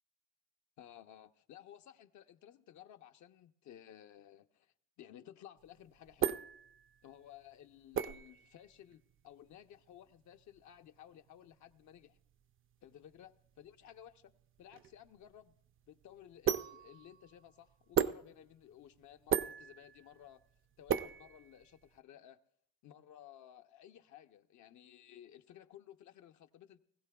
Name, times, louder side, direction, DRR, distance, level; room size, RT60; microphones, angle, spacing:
voice 1, 0.8-6.4 7.0-12.2 12.8-14.3 14.6-15.5 15.9-20.4 20.8-22.4 22.8-26.8, left 11 dB, 70° left, 0.7 m, -56 dB
sound 1, 5.6-22.0, right 9 dB, 45° right, 0.5 m, -39 dB
20.5 x 15.5 x 2.3 m
cardioid pair, 90°, 30 cm